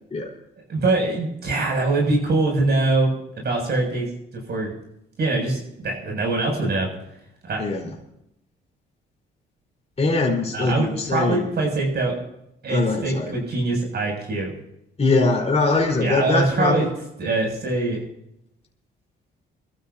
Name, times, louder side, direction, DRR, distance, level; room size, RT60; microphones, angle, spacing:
voice 1, 0.7-4.1 4.5-4.7 5.2-6.9 7.4-7.6 10.5-12.1 12.6-14.5 16.0-16.9 17.2-18.0, right 2 dB, 55° right, -1 dB, 7.4 m, -23 dB
voice 2, 7.6-7.9 10.0-11.5 12.7-13.3 15.0-16.8, left 3 dB, 30° left, -2 dB, 4.6 m, -22 dB
27.5 x 14.0 x 2.9 m, 0.83 s
cardioid pair, 90°, 20 cm